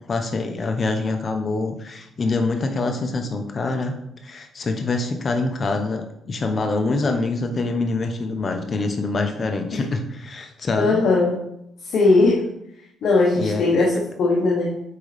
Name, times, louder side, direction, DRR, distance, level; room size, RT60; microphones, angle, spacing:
voice 1, 0.1-3.9 4.2-11.0 13.3-13.9, left 3 dB, 40° left, 5 dB, 0.9 m, -25 dB
voice 2, 10.8-11.4 11.9-12.4 13.0-14.8, left 3 dB, 70° left, -3 dB, 1.1 m, -19 dB
8.7 x 3.9 x 3.4 m, 0.80 s
cardioid pair, 90°, 0 cm